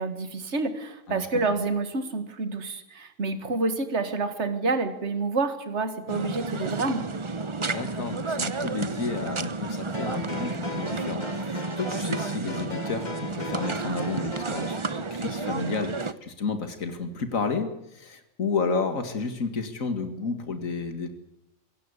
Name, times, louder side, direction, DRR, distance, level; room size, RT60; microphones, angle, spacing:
voice 1, 0.0-7.1, right 3 dB, 55° right, 10 dB, 2.2 m, -28 dB
voice 2, 1.1-1.4 7.6-21.1, left 4 dB, 80° left, 8 dB, 2.5 m, -31 dB
sound 1, 6.1-16.1, right 3 dB, 25° right, 0.8 m, -31 dB
sound 2, 9.9-14.9, left 2 dB, 35° left, 1.7 m, -38 dB
26.0 x 17.0 x 8.1 m, 0.84 s
omnidirectional pair, 1.4 m